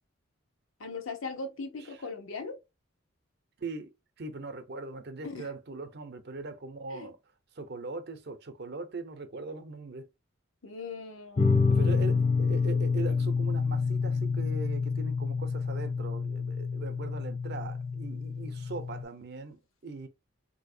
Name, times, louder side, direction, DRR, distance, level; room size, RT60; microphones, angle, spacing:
voice 1, 0.8-2.6 5.2-5.5 6.9-7.1 10.6-12.1, left 4 dB, 75° left, 0.8 m, -40 dB
voice 2, 3.6-3.9 4.2-7.2 7.6-10.1 11.7-20.1, right 3 dB, 50° right, 0.7 m, -40 dB
sound 1, 11.4-19.0, left 4 dB, 25° left, 0.4 m, -28 dB
3.5 x 2.8 x 2.6 m
head